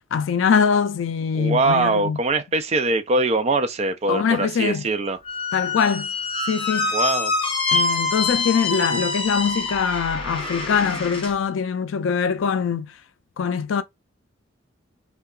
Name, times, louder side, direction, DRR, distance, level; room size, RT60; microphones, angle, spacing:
voice 1, 0.1-2.2 4.1-4.9 5.5-6.1 6.5-7.0 7.7-13.0 13.4-13.8, left 6 dB, 80° left, 0.4 m, -23 dB
voice 2, 1.3-5.2 6.9-7.3, right 3 dB, 30° right, 0.3 m, -22 dB
Squeak, 5.2-11.3, left 3 dB, 25° left, 0.6 m, -25 dB
2.7 x 2.2 x 2.3 m
head